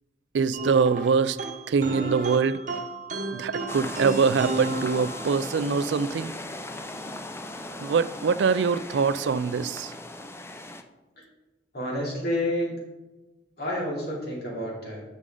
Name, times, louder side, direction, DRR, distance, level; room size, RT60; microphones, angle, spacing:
voice 1, 0.3-1.4 1.7-2.6 3.3-6.3 7.8-9.9, right 5 dB, 75° right, 0.4 m, -24 dB
sound 1, 0.5-5.6, right 2 dB, 50° right, 0.9 m, -33 dB
sound 2, 3.7-10.8, left 2 dB, 15° left, 0.5 m, -38 dB
voice 2, 11.7-12.8 13.6-15.0, left 1 dB, 65° left, 2.8 m, -29 dB
9.7 x 6.5 x 3.8 m
head